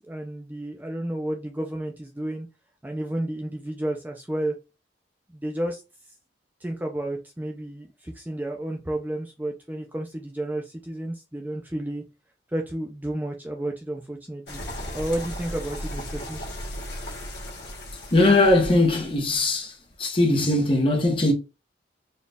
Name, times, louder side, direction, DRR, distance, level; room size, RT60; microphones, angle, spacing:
voice 1, 0.0-2.5 2.8-4.6 5.3-5.8 6.6-12.0 12.5-14.6 14.9-16.4, right 1 dB, 10° right, 0.4 m, -31 dB
sound 1, 14.5-19.9, equal, 70° left, 1.2 m, -36 dB
voice 2, 18.1-19.7 20.0-21.3, left 2 dB, 30° left, 0.9 m, -20 dB
4.2 x 2.4 x 3.4 m
head